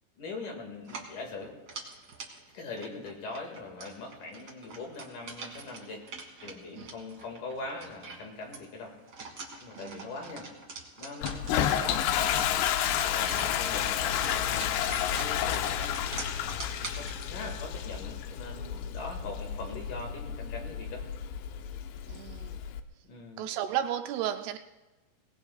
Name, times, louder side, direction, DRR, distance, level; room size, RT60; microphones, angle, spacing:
voice 1, 0.2-1.5 2.5-6.0 6.4-8.9 9.6-10.5 11.0-12.3 13.0-15.9 16.9-21.0 23.1-23.5, left 3 dB, 55° left, 1 dB, 3.2 m, -42 dB
sound 1, 0.8-17.6, right 4 dB, 35° right, 1.6 m, -45 dB
voice 2, 9.8-10.1 11.6-11.9 13.3-13.7 22.1-22.6 23.4-24.6, right 10 dB, 80° right, 8 dB, 2.5 m, -34 dB
Toilet flush, 11.2-22.8, left 10 dB, 85° left, 2.9 m, -31 dB
24.0 x 19.0 x 2.4 m, 1.1 s
omnidirectional pair, 4.8 m